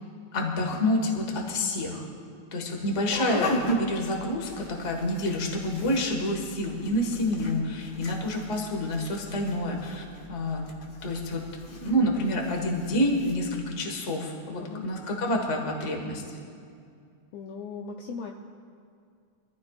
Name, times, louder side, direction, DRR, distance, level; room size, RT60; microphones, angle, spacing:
voice 1, 0.3-2.0 2.5-10.0 10.3-10.6 11.0-11.5 11.8-16.4, left 1 dB, 30° left, 1 dB, 1.4 m, -28 dB
sound 1, 3.1-13.3, equal, 50° left, 1.2 m, -37 dB
voice 2, 17.3-18.3, left 5 dB, 75° left, 2 dB, 1.7 m, -38 dB
24.5 x 14.5 x 2.4 m, 2.3 s
omnidirectional pair, 3.4 m